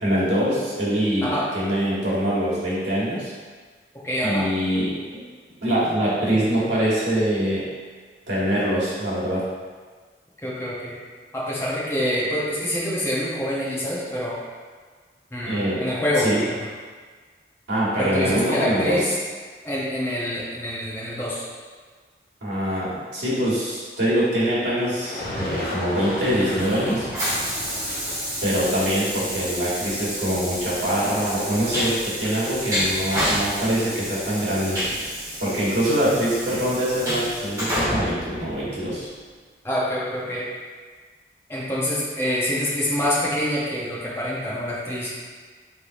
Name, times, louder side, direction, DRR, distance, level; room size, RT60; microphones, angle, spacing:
voice 1, 0.0-3.3 4.2-5.2 5.6-7.6 8.3-9.4 15.5-15.8 16.2-16.4 17.7-19.1 22.4-27.1 28.4-31.9 32.2-34.8 35.4-39.1, equal, 85° right, -9 dB, 1.4 m, -24 dB
voice 2, 4.0-4.5 10.4-11.0 11.3-14.4 15.3-16.7 18.0-19.1 19.6-21.4 39.6-40.4 41.5-45.1, equal, 15° left, -7 dB, 0.8 m, -26 dB
sound 1, 24.9-30.6, left 1 dB, 45° left, 0.8 m, -34 dB
Train, 26.6-39.2, equal, 20° right, 1.4 m, -29 dB
4.4 x 3.4 x 2.6 m, 1.5 s
head